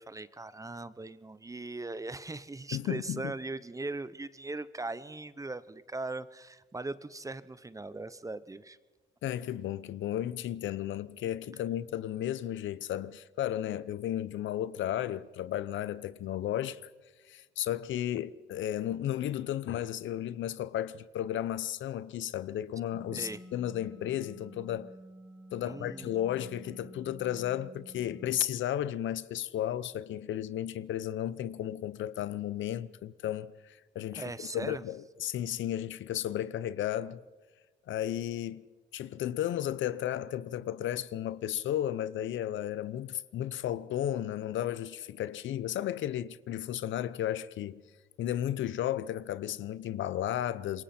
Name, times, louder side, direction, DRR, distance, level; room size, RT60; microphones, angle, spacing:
voice 1, 0.0-8.8 23.1-23.4 25.6-26.1 34.1-34.8, right 2 dB, 15° right, 0.8 m, -39 dB
voice 2, 2.7-3.3 9.2-16.8 17.3-24.9 25.5-37.2 37.9-38.6 38.9-47.8 48.2-50.8, left 11 dB, 75° left, 0.8 m, -34 dB
sound 1, 22.9-28.4, right 1 dB, 10° left, 3.4 m, -50 dB
26.5 x 22.5 x 4.4 m
cardioid pair, 90°, 20 cm